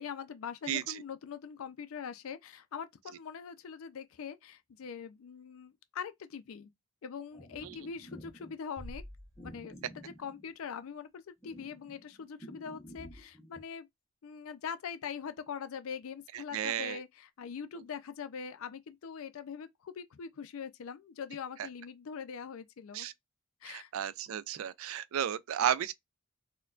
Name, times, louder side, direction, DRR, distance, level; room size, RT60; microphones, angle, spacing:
voice 1, 0.0-6.7 7.0-9.0 9.4-13.9 14.2-23.1 23.6-23.9, left 6 dB, 75° left, 0.4 m, -42 dB
sound 1, 7.3-8.5 9.4-10.9 11.4-13.6, equal, 15° left, 0.7 m, -51 dB
Bass drum, 8.8-10.2, equal, 55° right, 1.2 m, -48 dB
voice 2, 16.5-17.0 22.9-23.1 23.7-25.9, right 10 dB, 75° right, 0.3 m, -33 dB
4.3 x 2.2 x 2.3 m
head